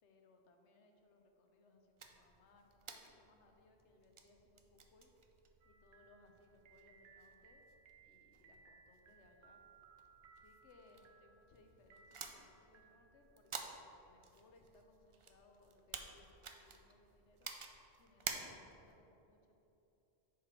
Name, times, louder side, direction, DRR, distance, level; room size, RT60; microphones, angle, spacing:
voice 1, 0.0-5.1 5.6-7.6 8.0-9.6 10.3-17.5 18.0-19.5, left 2 dB, 90° left, 4 dB, 1.1 m, -67 dB
sound 1, 2.0-19.0, right 5 dB, 50° right, 0.3 m, -53 dB
sound 2, 5.6-13.5, right 5 dB, 80° right, 0.9 m, -65 dB
6.7 x 4.9 x 4.9 m, 2.9 s
omnidirectional pair, 1.1 m